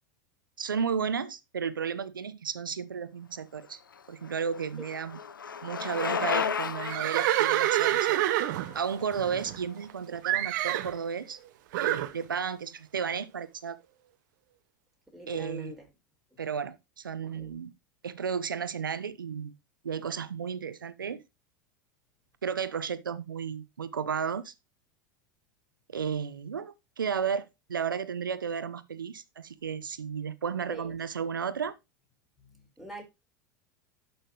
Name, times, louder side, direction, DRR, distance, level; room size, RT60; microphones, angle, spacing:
voice 1, 0.6-3.8 4.1-5.2 5.6-8.2 8.7-11.4 11.8-13.8 15.3-15.7 16.4-17.7 18.0-19.5 19.8-21.2 22.4-24.5 25.9-31.7, right 6 dB, 90° right, 0.9 m, -33 dB
Bicycle, 3.7-9.7, left 6 dB, 90° left, 0.8 m, -35 dB
Livestock farm animals working animals, 6.8-9.9 10.2-10.9 11.7-12.1, right 13 dB, 65° right, 1.0 m, -27 dB
voice 2, 15.1-15.9 17.3-17.6 30.7-30.9 32.4-33.0, right 1 dB, ahead, 4.5 m, -44 dB
11.5 x 6.1 x 3.0 m
hypercardioid pair, 90°, 11 cm